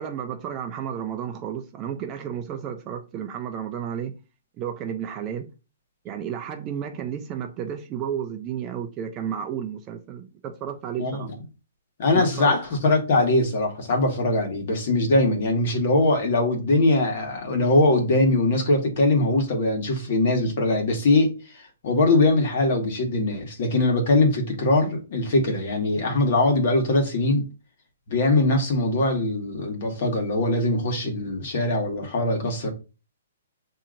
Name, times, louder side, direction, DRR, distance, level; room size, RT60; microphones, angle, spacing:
voice 1, 0.0-4.1 4.6-5.5 6.0-11.3 12.1-12.6, right 8 dB, 20° right, 0.4 m, -32 dB
voice 2, 12.0-27.5 28.1-32.7, left 2 dB, 45° left, 1.3 m, -22 dB
7.3 x 2.8 x 2.5 m
hypercardioid pair, 170°, 0 cm